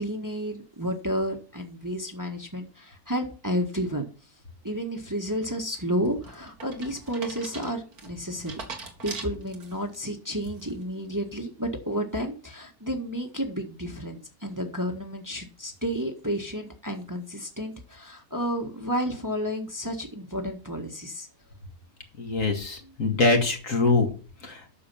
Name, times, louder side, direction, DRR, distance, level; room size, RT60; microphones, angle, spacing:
voice 1, 0.0-4.1 4.6-8.6 9.0-21.3 22.8-22.9, equal, 15° right, 3 dB, 1.5 m, -31 dB
sound 1, 5.7-10.0 10.4-10.8, right 4 dB, 80° right, 2.5 m, -41 dB
voice 2, 22.2-24.1 24.4-24.6, left 3 dB, 60° left, 3 dB, 2.4 m, -23 dB
9.7 x 6.8 x 7.0 m, 0.37 s
omnidirectional pair, 1.6 m